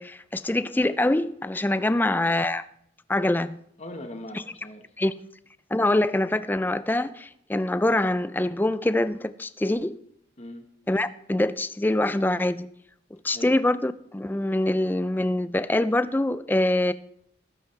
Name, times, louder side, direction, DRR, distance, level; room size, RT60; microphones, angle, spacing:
voice 1, 0.0-2.6 3.1-3.6 5.0-5.1 5.7-10.0 10.9-12.7 13.2-16.9, left 1 dB, 10° left, 0.3 m, -24 dB
voice 2, 3.8-4.9 10.4-10.7 13.3-13.5, left 1 dB, 35° left, 1.3 m, -40 dB
19.0 x 10.5 x 3.3 m
head